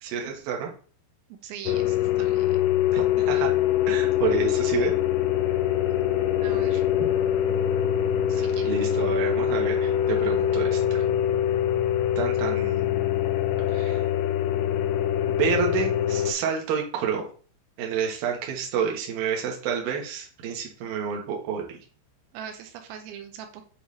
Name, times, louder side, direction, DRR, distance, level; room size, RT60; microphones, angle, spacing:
voice 1, 0.0-0.7 2.9-3.5 3.9-4.9 8.4-11.0 12.2-12.8 13.7-14.1 15.2-17.3 17.8-21.8, right 7 dB, 70° right, 0 dB, 2.4 m, -29 dB
voice 2, 1.4-2.6 6.4-6.8 8.3-8.7 22.3-23.6, right 9 dB, 85° right, 6 dB, 3.0 m, -41 dB
sound 1, 1.7-16.3, left 10 dB, 85° left, 3.0 m, -24 dB
8.4 x 3.6 x 3.1 m, 0.41 s
omnidirectional pair, 5.4 m